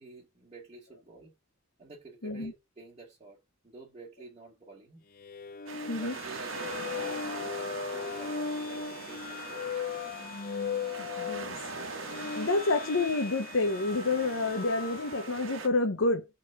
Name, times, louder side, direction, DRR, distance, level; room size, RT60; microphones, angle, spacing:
voice 1, 0.0-1.3 1.8-3.4 3.6-5.0 5.9-9.9, right 3 dB, 30° right, 2.3 m, -50 dB
sound 1, 5.2-15.4, left 6 dB, 45° left, 0.6 m, -38 dB
sound 2, 5.7-15.7, right 4 dB, 80° right, 1.4 m, -42 dB
voice 2, 11.0-11.6 12.2-16.3, left 2 dB, 70° left, 0.9 m, -29 dB
4.7 x 4.2 x 5.8 m
head